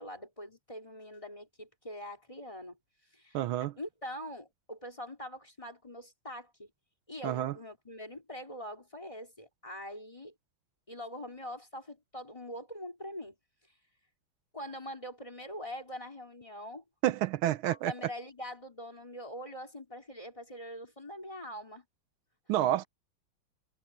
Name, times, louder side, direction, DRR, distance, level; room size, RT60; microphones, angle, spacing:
voice 1, 0.0-2.8 3.1-3.4 3.8-6.7 7.1-10.3 10.9-13.4 14.5-16.8 17.6-21.8, equal, 15° left, 3.2 m, -43 dB
voice 2, 3.3-3.7 7.2-7.5 17.0-17.9 22.5-22.8, right 13 dB, 85° right, 1.6 m, -29 dB
omnidirectional pair, 2.3 m